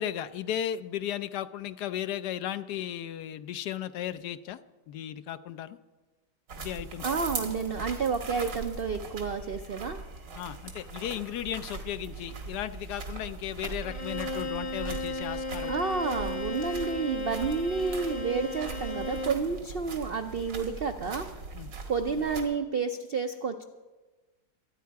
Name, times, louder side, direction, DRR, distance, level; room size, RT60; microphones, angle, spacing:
voice 1, 0.0-4.6 4.9-5.8 6.6-7.1 10.3-15.8 21.6-21.7, left 10 dB, 75° left, 13 dB, 1.1 m, -35 dB
sound 1, 6.5-22.4, right 4 dB, 85° right, 2.4 m, -40 dB
voice 2, 7.0-10.0 15.7-21.4 21.9-23.6, right 5 dB, 70° right, 6 dB, 0.5 m, -30 dB
Bowed string instrument, 13.8-19.5, left 2 dB, 35° left, 0.9 m, -35 dB
24.5 x 9.5 x 4.7 m, 1.2 s
omnidirectional pair, 1.9 m